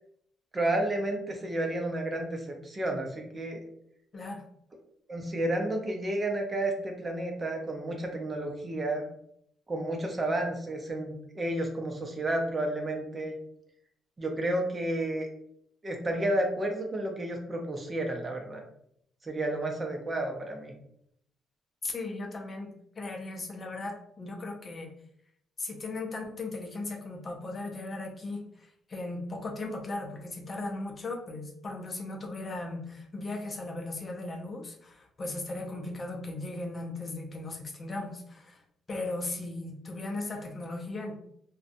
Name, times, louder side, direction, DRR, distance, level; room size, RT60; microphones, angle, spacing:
voice 1, 0.5-3.6 5.1-9.0 9.7-13.3 14.2-15.3 15.8-18.6 19.2-20.7, right 1 dB, 30° right, 2 dB, 0.6 m, -31 dB
voice 2, 4.1-4.4 21.8-24.9 25.6-38.6 38.9-41.2, left 2 dB, 35° left, 1 dB, 0.5 m, -37 dB
2.5 x 2.2 x 2.5 m, 0.70 s
cardioid pair, 90°, 0 cm